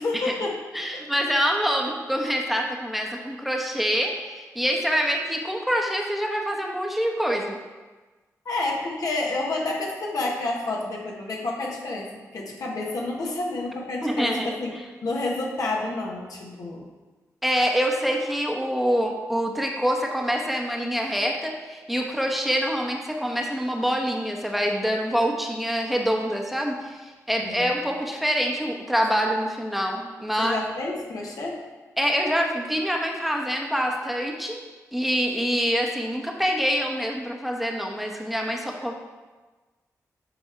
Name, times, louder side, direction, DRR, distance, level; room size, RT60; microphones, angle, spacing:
voice 1, 0.0-0.6 0.9-1.0 8.4-14.7 15.0-16.8 27.4-27.7 30.4-31.6, left 2 dB, 70° left, -2 dB, 1.4 m, -29 dB
voice 2, 0.7-7.6 14.0-14.6 17.4-30.6 32.0-34.6 34.9-38.9, equal, ahead, 1 dB, 1.0 m, -25 dB
8.9 x 3.5 x 4.4 m, 1.3 s
cardioid pair, 55°, 6 cm